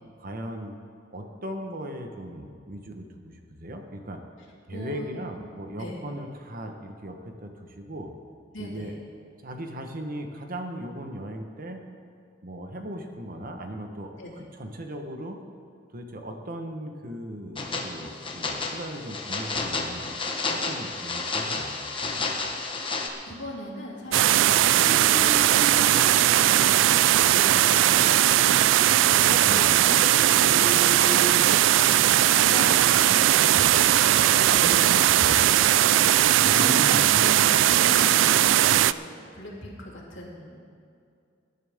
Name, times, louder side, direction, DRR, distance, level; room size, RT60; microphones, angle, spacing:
voice 1, 0.2-0.7 1.1-4.2 4.7-8.1 8.6-8.9 9.4-11.8 12.4-14.1 14.6-15.4 15.9-20.1 20.5-21.7 22.0-22.3 25.0-25.3 29.4-29.8 36.4-37.7, right 1 dB, 50° right, 4 dB, 1.2 m, -37 dB
voice 2, 4.7-5.2 5.8-6.0 8.5-8.9 14.2-14.3 22.9-31.7 32.3-36.7 37.8-39.1 39.3-40.6, left 1 dB, 75° left, -3 dB, 3.0 m, -39 dB
sound 1, 17.6-23.1, left 3 dB, 25° left, 1.2 m, -31 dB
sound 2, 24.0-38.5, equal, 25° right, 2.6 m, -40 dB
sound 3, 24.1-38.9, right 12 dB, 70° right, 0.3 m, -19 dB
20.5 x 11.0 x 3.6 m, 2.4 s
head